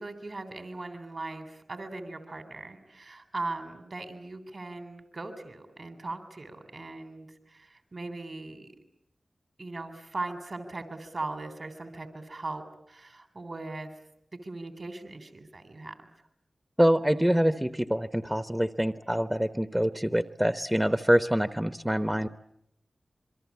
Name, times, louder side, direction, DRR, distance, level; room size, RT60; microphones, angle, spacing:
voice 1, 0.0-8.7 9.6-13.9 14.3-16.1, right 2 dB, 60° right, 8 dB, 3.4 m, -39 dB
voice 2, 16.8-22.3, equal, 10° right, 11 dB, 0.9 m, -25 dB
27.0 x 23.0 x 8.5 m, 0.78 s
cardioid pair, 45°, 0 cm